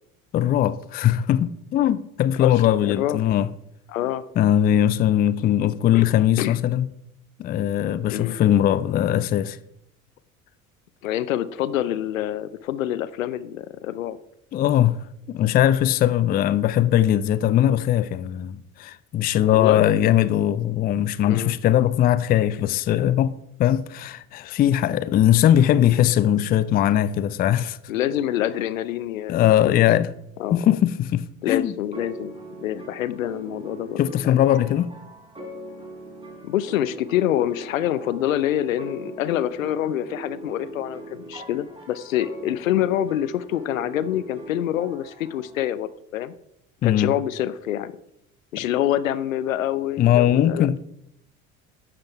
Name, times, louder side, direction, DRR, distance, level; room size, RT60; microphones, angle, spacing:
voice 1, 0.3-3.5 4.4-6.9 7.4-9.6 14.5-15.0 15.3-27.8 29.3-30.1 30.5-31.8 34.0-34.9 46.8-47.1 50.0-50.8, left 11 dB, 20° left, 0.4 m, -20 dB
voice 2, 2.8-3.2 3.9-4.3 5.9-6.0 6.4-6.6 8.1-8.4 11.0-14.2 19.5-19.8 21.3-21.5 27.9-29.8 30.4-30.8 31.4-34.0 34.2-34.4 36.4-46.3 46.8-47.9 48.5-50.7, left 12 dB, 70° left, 0.7 m, -26 dB
sound 1, 31.9-45.6, right 1 dB, 10° right, 3.9 m, -41 dB
11.5 x 7.7 x 4.6 m
figure-of-eight pair, 65°, 42 cm